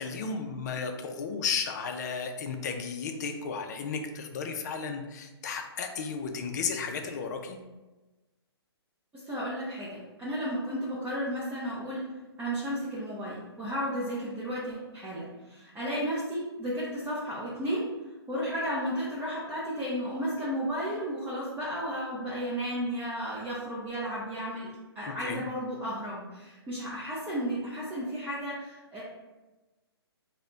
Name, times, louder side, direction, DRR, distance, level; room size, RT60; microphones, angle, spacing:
voice 1, 0.0-7.6 25.1-25.4, left 5 dB, 40° left, 5 dB, 0.4 m, -34 dB
voice 2, 9.1-12.0 12.4-17.8 18.3-29.0, equal, 10° right, -8 dB, 0.5 m, -33 dB
3.2 x 2.1 x 3.7 m, 1.2 s
hypercardioid pair, 145°, 14 cm